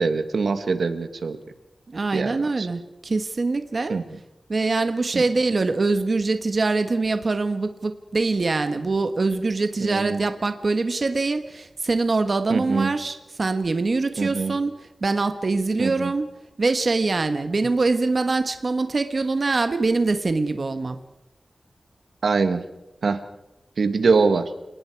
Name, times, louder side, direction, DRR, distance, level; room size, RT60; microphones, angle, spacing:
voice 1, 0.0-1.4 2.1-2.7 3.9-4.0 5.1-5.2 9.8-10.2 12.5-12.9 14.2-14.6 15.8-16.1 22.2-22.6 23.0-23.2 23.8-24.5, right 4 dB, 80° right, 9 dB, 1.6 m, -23 dB
voice 2, 1.9-4.0 4.5-16.3 16.6-21.0, right 3 dB, 55° right, 8 dB, 1.4 m, -24 dB
29.0 x 19.5 x 4.7 m, 0.95 s
wide cardioid pair, 90°, 0 cm